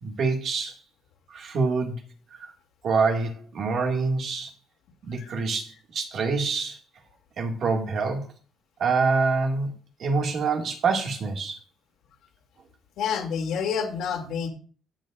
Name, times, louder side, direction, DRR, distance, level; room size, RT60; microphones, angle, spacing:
voice 1, 0.0-0.8 1.3-2.0 2.3-2.4 2.8-4.5 5.1-6.8 7.4-8.2 8.8-9.7 10.0-11.6, right 4 dB, 50° right, 3 dB, 2.0 m, -26 dB
voice 2, 13.0-14.5, left 7 dB, 65° left, 2 dB, 2.6 m, -28 dB
17.5 x 7.4 x 2.5 m, 0.40 s
cardioid pair, 145°, 0 cm